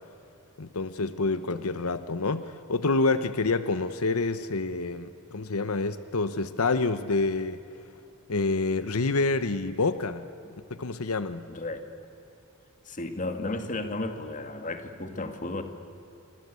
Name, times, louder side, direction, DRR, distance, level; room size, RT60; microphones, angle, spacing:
voice 1, 0.6-7.6 8.3-10.3 10.7-11.5, left 3 dB, 85° left, 12 dB, 1.0 m, -27 dB
voice 2, 11.5-11.9 12.9-15.6, left 2 dB, 35° left, 7 dB, 2.1 m, -34 dB
28.0 x 25.5 x 8.4 m, 3.0 s
head